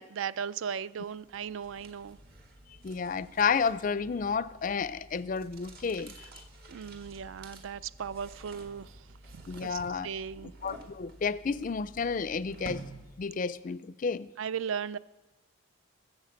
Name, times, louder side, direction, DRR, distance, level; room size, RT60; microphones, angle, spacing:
voice 1, 0.0-2.2 6.7-9.1 9.3-10.5 14.4-15.0, right 7 dB, 70° right, 0.4 m, -37 dB
sound 1, 1.0-13.4, right 1 dB, 45° right, 1.6 m, -50 dB
voice 2, 2.8-6.3 9.5-10.1 10.4-12.8 13.2-14.3, left 5 dB, 40° left, 0.4 m, -31 dB
18.5 x 7.3 x 7.7 m
head